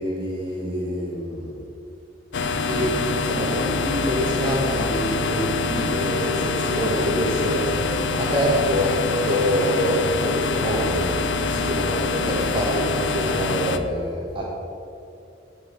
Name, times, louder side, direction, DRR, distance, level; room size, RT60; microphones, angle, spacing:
voice 1, 0.0-1.5 2.6-7.9 8.2-11.1 11.5-14.4, equal, 30° right, -4 dB, 1.7 m, -26 dB
sound 1, 2.3-13.8, left 4 dB, 70° left, 0.6 m, -25 dB
9.3 x 8.0 x 6.4 m, 2.6 s
head